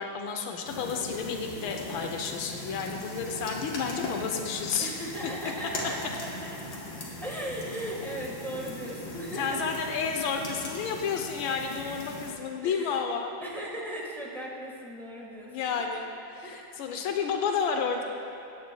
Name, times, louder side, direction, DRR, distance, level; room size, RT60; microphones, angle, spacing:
voice 1, 0.0-4.9 9.3-13.3 15.5-18.0, left 6 dB, 85° left, 3 dB, 1.5 m, -31 dB
sound 1, 0.6-12.3, left 2 dB, 70° left, 1.8 m, -39 dB
voice 2, 4.8-6.0 6.6-9.6 12.6-13.0 13.4-15.7 16.4-16.8, right 1 dB, ahead, -4 dB, 1.0 m, -38 dB
15.5 x 8.7 x 2.2 m, 2.9 s
omnidirectional pair, 2.2 m